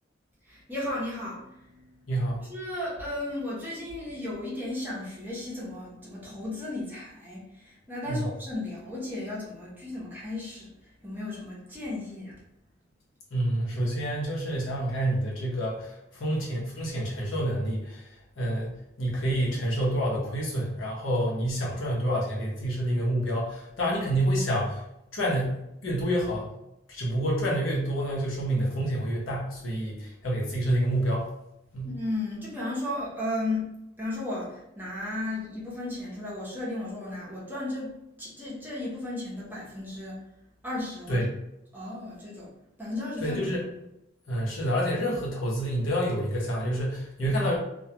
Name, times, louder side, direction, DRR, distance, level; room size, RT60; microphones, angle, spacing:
voice 1, 0.5-1.9 2.4-12.4 31.8-37.9 38.2-40.2 40.6-41.2 41.7-42.5 42.8-43.4, left 2 dB, 10° right, -6 dB, 0.7 m, -35 dB
voice 2, 2.1-2.4 8.1-8.2 13.3-18.1 18.4-24.8 25.1-25.6 25.8-26.5 26.9-31.2 31.7-31.9 41.1-41.3 43.2-43.6 44.3-47.6, right 1 dB, 80° left, -4 dB, 0.8 m, -28 dB
2.2 x 2.2 x 2.8 m, 0.85 s
head